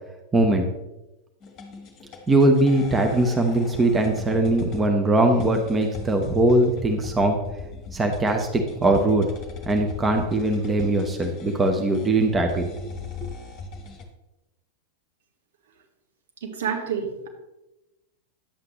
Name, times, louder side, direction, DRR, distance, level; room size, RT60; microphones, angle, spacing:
voice 1, 0.3-0.7 2.3-7.4 7.9-9.3 9.7-12.9, right 1 dB, 15° right, 3 dB, 0.9 m, -21 dB
sound 1, 1.4-14.0, left 3 dB, 30° left, 1.5 m, -40 dB
voice 2, 16.4-17.3, right 7 dB, 60° right, 3 dB, 1.3 m, -28 dB
10.0 x 7.8 x 3.0 m, 0.98 s
figure-of-eight pair, 90°, 0 cm